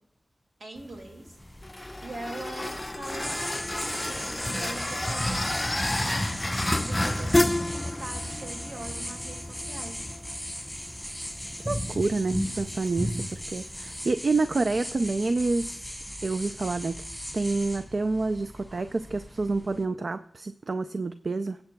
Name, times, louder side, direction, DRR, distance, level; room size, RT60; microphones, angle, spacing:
voice 1, 0.6-1.4 2.0-10.0, right 2 dB, 80° right, 2 dB, 2.1 m, -42 dB
sound 1, 0.8-14.1, left 1 dB, 20° left, 0.3 m, -32 dB
sound 2, 1.4-19.8, equal, ahead, 4.1 m, -36 dB
voice 2, 11.6-17.0 17.3-21.6, right 3 dB, 60° right, 10 dB, 0.4 m, -28 dB
21.0 x 8.0 x 2.2 m, 0.70 s
wide cardioid pair, 65°, 0 cm